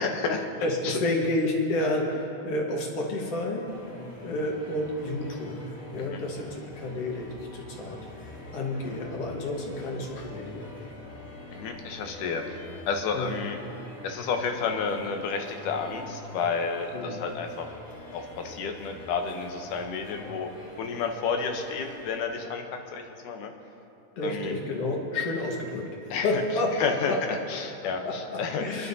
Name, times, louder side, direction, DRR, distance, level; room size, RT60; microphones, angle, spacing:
voice 1, 0.0-0.4 0.8-1.0 6.0-6.2 11.5-13.6 14.0-17.7 18.1-20.5 20.8-22.6 22.9-23.5 24.2-24.5 26.1-26.4 26.8-28.6, left 5 dB, 85° left, 4 dB, 2.5 m, -31 dB
voice 2, 0.6-3.7 4.2-8.0 8.5-10.7 13.1-13.4 16.9-17.2 24.2-26.7 27.1-27.2 28.0-28.9, left 2 dB, 55° left, -1 dB, 2.2 m, -30 dB
sound 1, 3.6-22.2, left 1 dB, 30° left, 2.0 m, -44 dB
25.5 x 11.0 x 2.7 m, 2.7 s
omnidirectional pair, 3.6 m